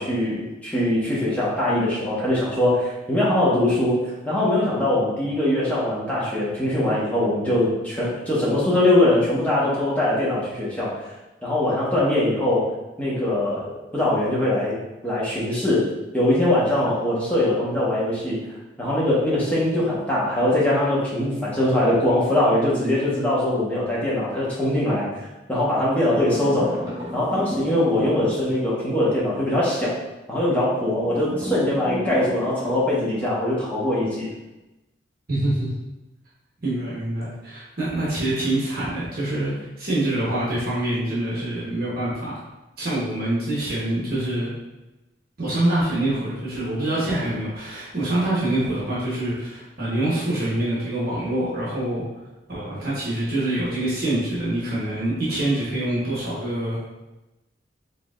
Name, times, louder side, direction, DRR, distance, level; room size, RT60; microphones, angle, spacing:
voice 1, 0.0-4.0 4.2-11.0 11.4-12.7 13.0-15.8 16.1-18.4 18.8-25.1 25.5-26.8 27.1-29.9 30.3-34.3, left 1 dB, 10° left, -8 dB, 1.0 m, -22 dB
sound 1, 26.3-28.9 31.0-33.2, equal, 20° right, 1.3 m, -34 dB
voice 2, 35.3-35.7 36.6-39.5 39.8-42.3 42.8-44.5 45.4-52.0 52.5-56.9, right 1 dB, 50° right, -7 dB, 1.1 m, -25 dB
4.7 x 3.5 x 2.4 m, 1.0 s
head